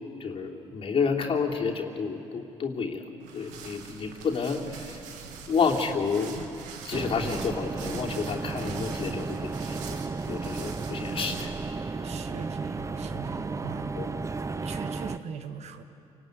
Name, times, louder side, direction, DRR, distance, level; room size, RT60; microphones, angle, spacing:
voice 1, 0.2-3.0 3.3-5.0 5.5-6.4 6.8-10.0 10.3-11.5 13.9-14.1, left 5 dB, 50° left, 0 dB, 3.1 m, -30 dB
sound 1, 3.2-11.7, right 6 dB, 90° right, 2.2 m, -43 dB
sound 2, 6.9-15.2, right 4 dB, 25° right, 0.9 m, -34 dB
voice 2, 12.0-13.9 14.6-15.8, right 7 dB, 65° right, 8 dB, 1.8 m, -40 dB
28.0 x 18.5 x 9.7 m, 2.9 s
cardioid pair, 85°, 12 cm